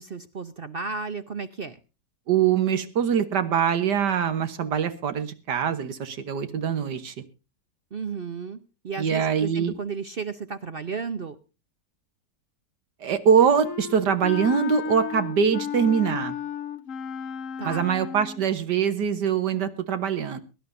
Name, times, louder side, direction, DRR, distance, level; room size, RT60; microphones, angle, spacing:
voice 1, 0.0-1.8 7.9-11.4 17.6-17.9, right 5 dB, 50° right, 11 dB, 0.7 m, -33 dB
voice 2, 2.3-7.2 9.0-9.7 13.0-16.4 17.6-20.4, right 7 dB, 75° right, 10 dB, 1.7 m, -23 dB
Wind instrument woodwind instrument, 13.6-18.5, left 7 dB, 55° left, 1.2 m, -33 dB
23.0 x 11.5 x 2.6 m, 0.30 s
omnidirectional pair, 1.9 m